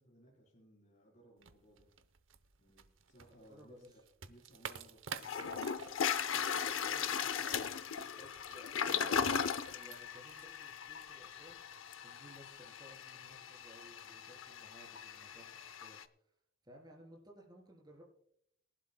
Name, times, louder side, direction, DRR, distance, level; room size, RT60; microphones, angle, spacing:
voice 1, 0.0-1.9 2.6-5.6, right 1 dB, 40° left, -2 dB, 3.9 m, -63 dB
sound 1, 1.4-11.6, right 6 dB, 70° right, 0.8 m, -52 dB
voice 2, 3.2-4.0 6.7-16.0 16.6-18.0, equal, 20° right, 1 dB, 3.7 m, -59 dB
Toilet flush, 4.7-4.8 5.2-16.0, left 7 dB, 80° left, 0.7 m, -38 dB
23.0 x 11.5 x 2.2 m, 0.72 s
head